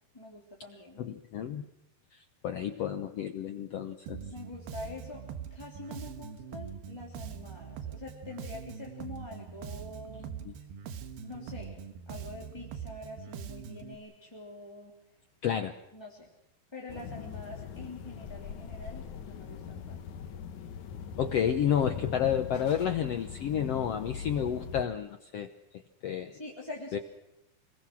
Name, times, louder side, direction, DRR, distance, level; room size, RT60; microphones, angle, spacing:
voice 1, 0.1-1.0 4.2-10.5 11.2-15.0 15.9-16.3 16.7-20.0 26.3-27.0, left 2 dB, 5° left, -3 dB, 2.8 m, -45 dB
voice 2, 1.0-1.7 2.1-4.2 10.4-10.5 15.4-15.7 21.2-25.5 26.0-26.4 26.9-27.0, left 9 dB, 90° left, 7 dB, 1.3 m, -30 dB
Bass guitar, 4.1-14.0, right 7 dB, 85° right, 3.3 m, -43 dB
sound 1, 16.9-24.9, left 7 dB, 60° left, 2.4 m, -41 dB
28.5 x 21.5 x 6.2 m, 0.88 s
omnidirectional pair, 4.4 m